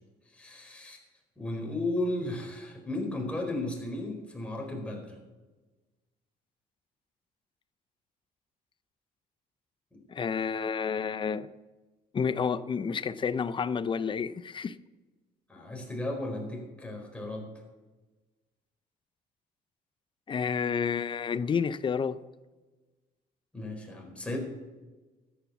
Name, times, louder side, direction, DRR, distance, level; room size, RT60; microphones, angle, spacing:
voice 1, 0.3-1.0 1.4-5.2 15.5-17.5 23.5-24.4, left 1 dB, 5° left, 0 dB, 4.6 m, -34 dB
voice 2, 10.1-11.5 12.1-14.8 20.3-22.2, left 6 dB, 30° left, 14 dB, 0.6 m, -30 dB
13.5 x 9.5 x 7.1 m, 1.2 s
cardioid pair, 110°, 17 cm